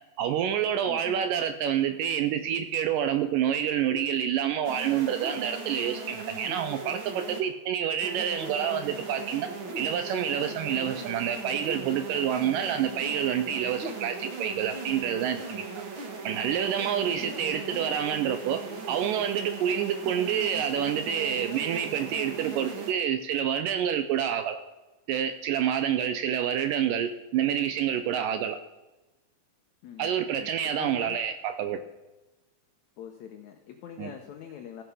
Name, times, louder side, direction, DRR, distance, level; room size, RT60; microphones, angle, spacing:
voice 1, 0.2-9.5 9.8-15.8 16.3-18.6 18.9-24.6 25.1-28.6 30.0-31.8 34.0-34.1, right 9 dB, 85° right, 9 dB, 1.9 m, -28 dB
voice 2, 0.8-1.2 17.2-17.6 29.8-30.1 30.6-31.2 33.0-34.8, left 9 dB, 85° left, 4 dB, 1.6 m, -44 dB
sound 1, 4.6-7.4 8.0-22.9, right 3 dB, 70° right, 1.2 m, -38 dB
15.5 x 5.7 x 5.4 m, 1.1 s
omnidirectional pair, 4.5 m